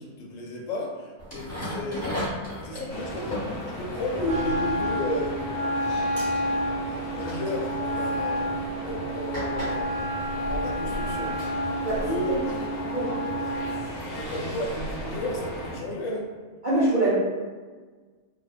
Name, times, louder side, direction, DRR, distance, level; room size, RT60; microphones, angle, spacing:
voice 1, 0.0-2.1 2.6-5.5 6.8-8.5 8.7-10.0 10.4-11.3 11.9-12.3 14.1-16.3, left 1 dB, 75° left, -1 dB, 0.9 m, -33 dB
sound 1, 1.2-5.4 5.7-5.9 6.2-6.4 7.2-7.8 8.5-8.6 9.3-12.1, left 1 dB, 15° left, 0.7 m, -36 dB
sound 2, 2.9-15.8, equal, 55° left, 0.5 m, -36 dB
Wind instrument woodwind instrument, 4.2-13.8, equal, 80° right, 1.1 m, -30 dB
voice 2, 16.6-17.1, right 2 dB, 65° right, -10 dB, 0.4 m, -23 dB
2.6 x 2.1 x 2.3 m, 1.4 s
omnidirectional pair, 1.4 m